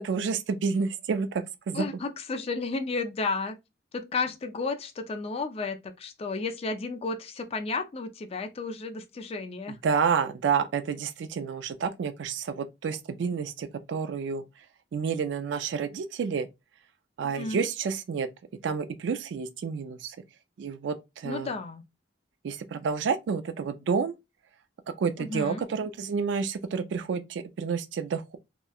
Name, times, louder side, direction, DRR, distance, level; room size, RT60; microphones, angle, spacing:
voice 1, 0.0-1.9 9.8-14.4 14.9-16.5 17.2-18.3 18.6-20.2 20.6-21.5 22.4-24.1 25.0-28.4, right 5 dB, 90° right, 0.3 m, -29 dB
voice 2, 1.7-3.6 3.9-9.8 17.4-17.6 21.2-21.8 25.2-25.6, left 3 dB, 35° left, 0.4 m, -32 dB
2.9 x 2.1 x 2.3 m
head